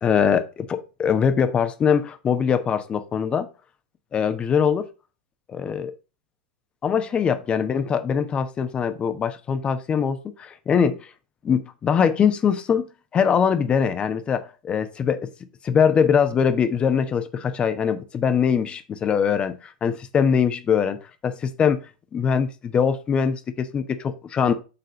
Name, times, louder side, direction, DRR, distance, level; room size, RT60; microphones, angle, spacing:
voice 1, 0.0-3.5 4.1-4.9 5.5-5.9 6.8-11.0 11.4-15.3 15.6-21.8 22.1-24.5, left 7 dB, 25° left, 1.0 m, -22 dB
6.9 x 3.8 x 4.9 m
hypercardioid pair, 95°, 4 cm